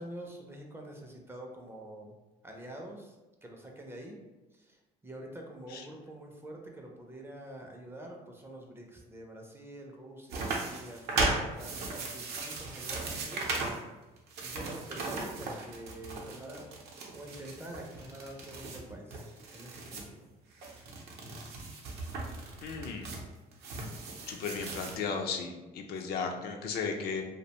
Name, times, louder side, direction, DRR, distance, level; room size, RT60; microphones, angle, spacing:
voice 1, 0.0-2.1 2.4-3.2 3.4-4.2 4.5-13.7 14.4-16.7 17.1-19.3 19.5-20.3 25.9-26.0, right 1 dB, 15° right, 1 dB, 0.4 m, -46 dB
sound 1, 10.3-13.8 14.2-20.1 20.5-25.0, right 3 dB, 70° right, 0.6 m, -37 dB
voice 2, 22.6-23.1 24.3-27.2, left 5 dB, 70° left, 3 dB, 0.4 m, -35 dB
2.4 x 2.1 x 2.8 m, 1.1 s
cardioid pair, 110°, 17 cm